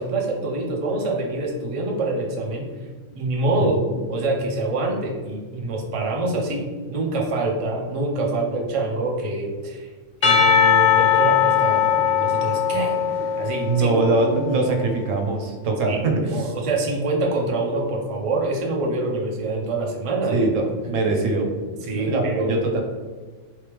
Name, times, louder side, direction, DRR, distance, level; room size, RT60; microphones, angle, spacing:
voice 1, 0.0-2.7 3.1-3.8 4.1-9.9 10.2-13.9 15.9-20.5 21.8-22.5, right 2 dB, 40° right, -1 dB, 0.5 m, -25 dB
voice 2, 3.6-4.0 13.6-16.5 20.3-21.5 21.9-22.8, right 3 dB, 75° right, 2 dB, 1.1 m, -22 dB
Percussion / Church bell, 10.2-14.4, left 8 dB, 50° left, 0.5 m, -19 dB
3.5 x 3.1 x 3.4 m, 1.4 s
omnidirectional pair, 1.4 m